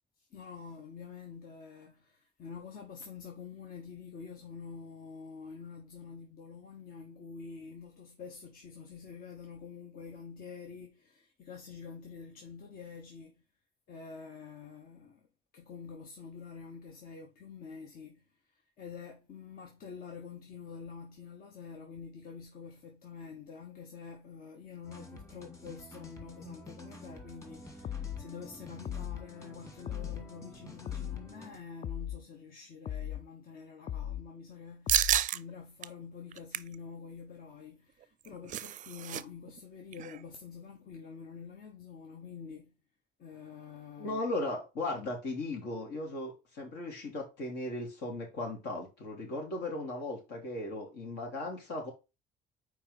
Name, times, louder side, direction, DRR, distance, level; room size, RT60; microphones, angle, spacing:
voice 1, 0.2-13.4 13.9-15.3 15.5-42.7 43.2-44.2, left 5 dB, 60° left, 1.3 m, -47 dB
sound 1, 24.8-31.6, left 1 dB, 20° left, 2.3 m, -49 dB
sound 2, 27.8-28.2 28.9-29.3 29.9-30.3 30.9-31.3 31.8-32.2 32.9-33.3 33.9-34.3 34.9-35.3, left 10 dB, 40° left, 0.4 m, -37 dB
sound 3, 34.9-35.4 35.8-35.9 36.3-36.7 38.0-39.2 39.5-39.6 39.9-40.2, right 12 dB, 50° right, 0.4 m, -30 dB
voice 2, 44.0-51.9, left 2 dB, 80° left, 3.1 m, -37 dB
4.7 x 4.5 x 5.4 m
cardioid pair, 110°, 17 cm